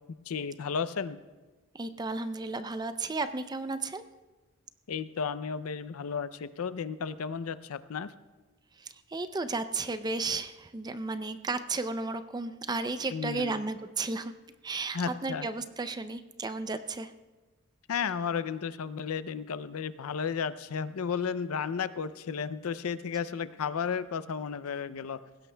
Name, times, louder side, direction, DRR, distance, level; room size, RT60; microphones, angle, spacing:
voice 1, 0.3-1.2 4.9-8.1 13.1-13.5 14.9-15.5 17.9-25.2, left 6 dB, 90° left, 15 dB, 0.5 m, -33 dB
voice 2, 1.7-4.0 8.8-14.3 14.6-17.1, right 3 dB, 20° right, 10 dB, 0.4 m, -33 dB
20.0 x 16.5 x 2.2 m, 1.2 s
head